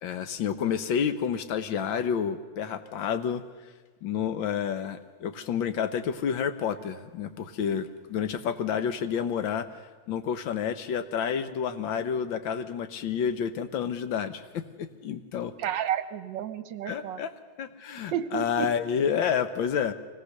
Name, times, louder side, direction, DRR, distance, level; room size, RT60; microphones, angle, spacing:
voice 1, 0.0-3.4 4.0-15.5 16.9-17.3 17.6-19.9, left 7 dB, 85° left, 10 dB, 1.7 m, -29 dB
voice 2, 15.6-17.2 18.1-18.7, right 10 dB, 75° right, 12 dB, 1.5 m, -31 dB
24.0 x 18.0 x 6.6 m, 1.4 s
omnidirectional pair, 2.1 m